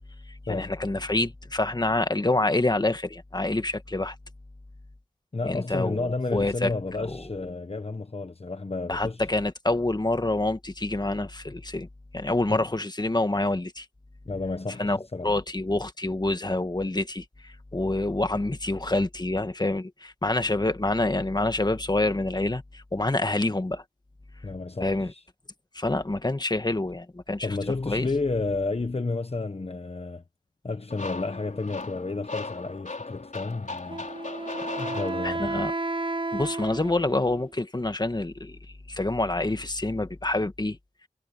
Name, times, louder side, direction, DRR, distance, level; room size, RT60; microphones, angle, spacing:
voice 1, 0.3-4.1 5.4-6.7 7.0-7.2 8.9-11.9 12.1-13.8 14.8-23.8 24.8-25.1 25.7-28.1 35.2-35.7 36.3-38.6 38.9-40.8, left 2 dB, 30° left, 1.5 m, -27 dB
voice 2, 5.3-9.2 12.5-12.7 14.2-15.3 24.4-25.2 27.4-30.2 30.6-34.0 34.8-35.5, left 3 dB, 45° left, 1.2 m, -31 dB
sound 1, 30.9-35.7, left 3 dB, 65° left, 4.3 m, -37 dB
Wind instrument woodwind instrument, 33.9-37.5, right 2 dB, 35° right, 1.1 m, -32 dB
wide cardioid pair, 50°, 14 cm